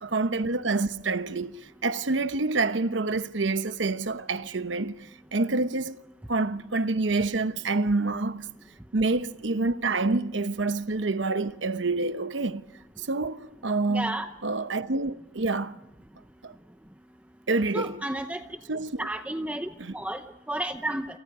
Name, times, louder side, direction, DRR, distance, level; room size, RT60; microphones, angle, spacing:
voice 1, 0.0-6.0 6.3-8.5 8.9-12.6 13.0-15.8 16.4-16.5 17.5-18.0 18.7-19.1 19.8-19.9, right 3 dB, 80° right, 1.0 m, -27 dB
voice 2, 13.9-14.3 17.7-18.4 19.0-19.7 19.9-20.2 20.5-21.1, right 1 dB, 10° right, 0.8 m, -31 dB
29.5 x 28.0 x 4.9 m
head